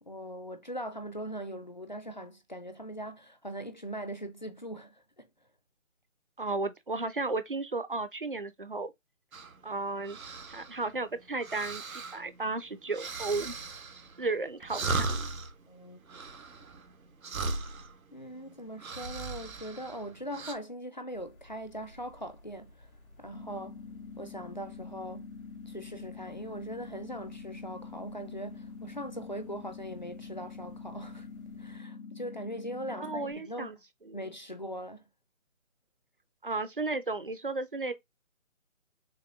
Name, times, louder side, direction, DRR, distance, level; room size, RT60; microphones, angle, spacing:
voice 1, 0.0-5.3 15.7-16.0 18.1-22.9 23.2-23.8 24.2-25.2 25.7-31.3 31.6-33.7 34.1-35.0, equal, 35° left, 0.5 m, -40 dB
voice 2, 6.4-8.9 9.6-10.2 10.5-13.5 14.2-15.2 33.0-33.8 34.1-34.2 36.4-37.9, right 3 dB, 45° right, 0.5 m, -34 dB
sound 1, 9.3-20.5, right 3 dB, 90° right, 1.2 m, -38 dB
sound 2, 21.1-31.8, left 1 dB, 90° left, 2.3 m, -57 dB
sound 3, 23.3-33.3, left 5 dB, 70° left, 0.8 m, -45 dB
6.4 x 2.3 x 2.6 m
hypercardioid pair, 170°, 40 cm